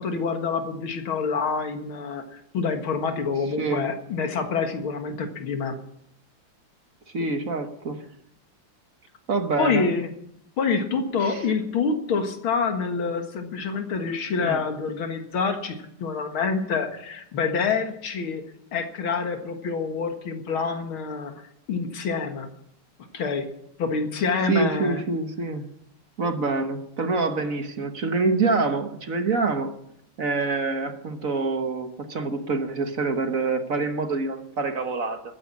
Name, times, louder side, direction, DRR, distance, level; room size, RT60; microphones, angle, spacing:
voice 1, 0.0-5.8 9.6-10.1 10.6-18.4 18.7-22.5 23.1-23.5 23.8-25.0, left 5 dB, 75° left, 2.5 m, -27 dB
voice 2, 3.6-3.9 7.1-8.1 9.3-9.8 11.2-11.4 14.4-14.6 24.5-25.7 26.2-29.7 30.2-35.2, right 3 dB, 45° right, 1.4 m, -26 dB
14.5 x 10.0 x 7.3 m
omnidirectional pair, 2.4 m